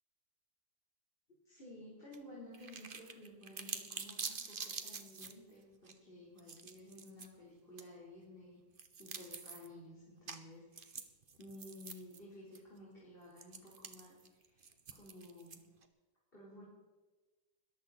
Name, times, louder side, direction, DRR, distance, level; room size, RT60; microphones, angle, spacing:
voice 1, 1.3-11.0 11.4-15.7 16.3-16.6, left 1 dB, 30° left, -6 dB, 4.4 m, -54 dB
sound 1, 2.1-2.2 2.5-5.3 5.9-6.0 6.4-7.3 7.8-7.9 8.8-9.7 10.3-10.4 10.7-12.2 12.5-12.6 13.4-15.8, right 5 dB, 35° right, 1.0 m, -46 dB
21.0 x 14.5 x 4.3 m, 1.3 s
omnidirectional pair, 1.9 m